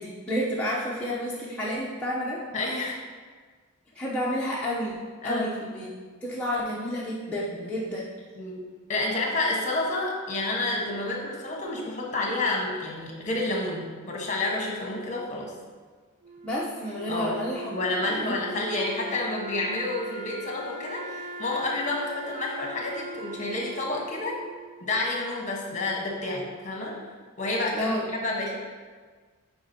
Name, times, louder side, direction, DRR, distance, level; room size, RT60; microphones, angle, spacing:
voice 1, 0.0-2.4 4.0-5.0 5.2-5.9 6.2-8.1 16.4-17.8 18.1-18.6 27.7-28.1, equal, 5° left, -7 dB, 0.7 m, -30 dB
voice 2, 2.5-3.0 5.2-5.5 8.4-15.5 17.1-17.3 17.7-24.4 24.8-27.0 27.4-28.6, left 2 dB, 35° left, -1 dB, 1.2 m, -29 dB
Wind instrument woodwind instrument, 16.2-25.3, right 1 dB, 35° right, 0.4 m, -40 dB
8.6 x 5.0 x 2.8 m, 1.5 s
head